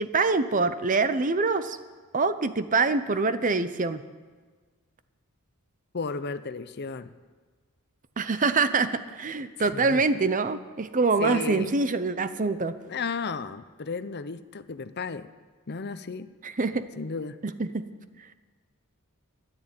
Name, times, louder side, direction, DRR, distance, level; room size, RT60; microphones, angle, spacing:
voice 1, 0.0-1.8 2.1-4.0 8.2-12.8 16.4-16.8 17.4-17.8, right 3 dB, 35° right, 12 dB, 0.7 m, -25 dB
voice 2, 5.9-7.1 9.7-10.0 11.2-11.7 12.9-15.3 15.7-16.3 17.0-17.4, left 4 dB, 45° left, 12 dB, 0.7 m, -33 dB
13.5 x 11.0 x 9.0 m, 1.4 s
head